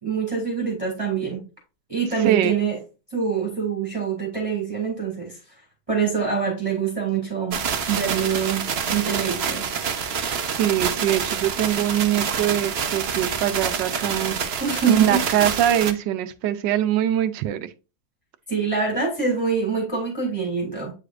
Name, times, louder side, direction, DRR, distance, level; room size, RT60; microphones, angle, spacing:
voice 1, 0.0-1.5 1.9-2.8 3.1-5.4 5.9-7.6 7.9-9.7 14.6-15.2 18.5-20.9, right 6 dB, 20° right, 2.1 m, -25 dB
voice 2, 2.2-2.6 10.5-14.6 14.9-17.7, right 11 dB, 85° right, 1.4 m, -23 dB
sound 1, 7.5-15.9, right 6 dB, 50° right, 0.8 m, -27 dB
8.6 x 4.9 x 2.4 m
omnidirectional pair, 1.9 m